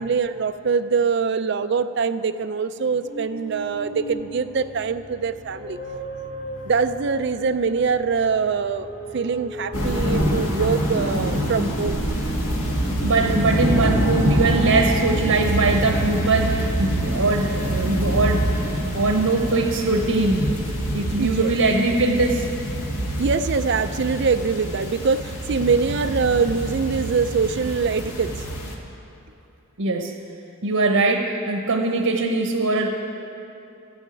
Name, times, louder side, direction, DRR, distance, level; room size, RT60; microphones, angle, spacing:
voice 1, 0.0-5.8 6.6-8.9 9.1-12.0 21.2-21.5 23.2-28.3, right 5 dB, 50° right, 11 dB, 0.4 m, -23 dB
sound 1, 3.0-13.2 13.7-16.5, right 1 dB, 55° left, 1.9 m, -37 dB
sound 2, 9.7-28.7, right 1 dB, 90° left, 1.8 m, -25 dB
voice 2, 13.0-20.5 20.9-22.5 29.8-30.2 30.6-32.9, right 3 dB, 90° right, 3 dB, 1.0 m, -21 dB
13.5 x 7.1 x 9.1 m, 2.8 s
head